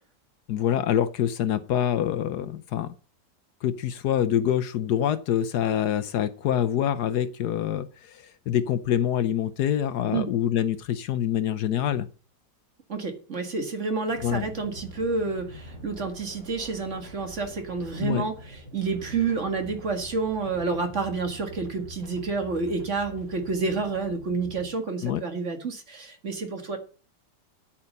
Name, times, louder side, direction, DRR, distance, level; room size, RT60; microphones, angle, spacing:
voice 1, 0.5-2.9 3.6-12.1 14.2-14.4 18.0-18.3 25.0-25.2, left 10 dB, 70° left, 13 dB, 1.2 m, -25 dB
voice 2, 12.9-26.8, right 4 dB, 45° right, 5 dB, 2.0 m, -29 dB
sound 1, 14.1-24.7, right 1 dB, 70° right, 5.6 m, -44 dB
8.9 x 8.7 x 5.4 m, 0.37 s
omnidirectional pair, 1.9 m